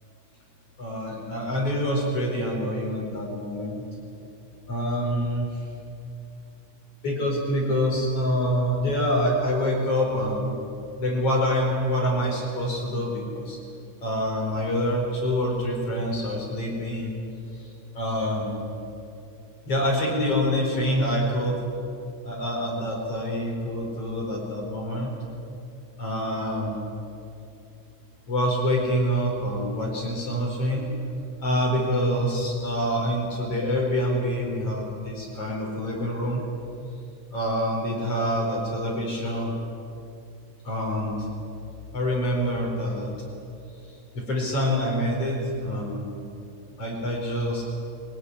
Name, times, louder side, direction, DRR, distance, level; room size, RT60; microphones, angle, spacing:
voice 1, 0.8-3.8 4.7-5.6 7.0-10.5 11.0-13.6 14.0-17.1 17.5-18.6 19.7-21.6 22.2-25.1 26.0-26.9 28.3-30.9 31.4-36.4 37.3-39.5 40.6-41.3 41.9-43.1 43.8-46.1 46.8-47.6, equal, 50° left, -1 dB, 5.6 m, -26 dB
22.0 x 19.5 x 9.9 m, 2.6 s
omnidirectional pair, 3.3 m